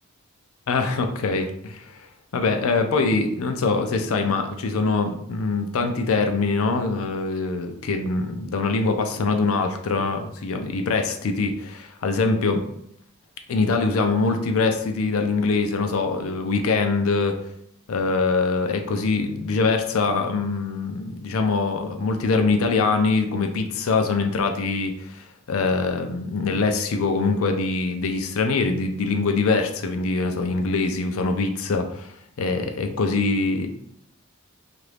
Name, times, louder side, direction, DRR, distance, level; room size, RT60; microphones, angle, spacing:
voice 1, 0.7-2.0 2.3-12.7 13.5-17.4 17.9-33.7, left 3 dB, 65° left, 6 dB, 0.4 m, -23 dB
2.9 x 2.5 x 3.3 m, 0.69 s
head